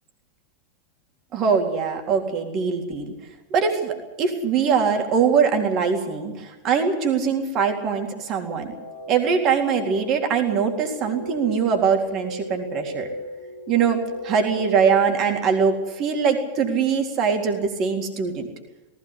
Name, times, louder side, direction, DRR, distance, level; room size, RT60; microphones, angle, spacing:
voice 1, 1.3-3.1 3.5-8.7 9.1-13.1 13.7-18.5, right 6 dB, 35° right, 3 dB, 3.7 m, -22 dB
Dark Plasma, 8.5-16.5, equal, 85° right, 5.7 m, -37 dB
19.0 x 16.5 x 9.9 m, 1.1 s
figure-of-eight pair, 90°, 0 cm